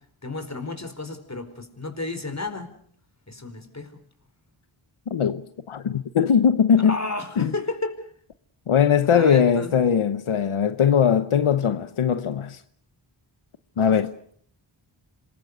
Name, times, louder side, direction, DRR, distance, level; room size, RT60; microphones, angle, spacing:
voice 1, 0.2-2.7 3.3-4.0 6.8-8.0 9.1-9.7, left 2 dB, 35° left, 4.6 m, -32 dB
voice 2, 5.1-7.0 7.4-7.5 8.7-12.6 13.8-14.1, left 7 dB, 90° left, 1.0 m, -20 dB
26.5 x 21.5 x 6.7 m
cardioid pair, 45°, 48 cm